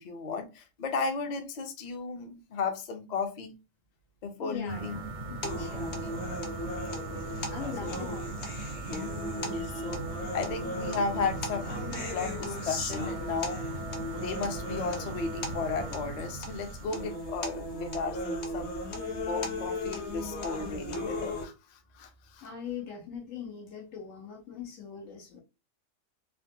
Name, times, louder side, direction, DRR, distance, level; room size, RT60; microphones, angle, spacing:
voice 1, 0.0-3.5 4.2-5.0 6.9-7.3 7.8-8.0 9.4-13.6 14.1-18.7 19.2-22.5, left 4 dB, 45° left, 0.6 m, -35 dB
voice 2, 4.4-5.0 5.3-6.3 7.5-8.5 22.4-25.4, left 7 dB, 80° left, 1.3 m, -41 dB
sound 1, 4.7-17.1, right 3 dB, 55° right, 0.5 m, -39 dB
sound 2, 5.4-21.4, left 1 dB, 60° left, 1.0 m, -36 dB
3.4 x 2.2 x 2.7 m
omnidirectional pair, 1.3 m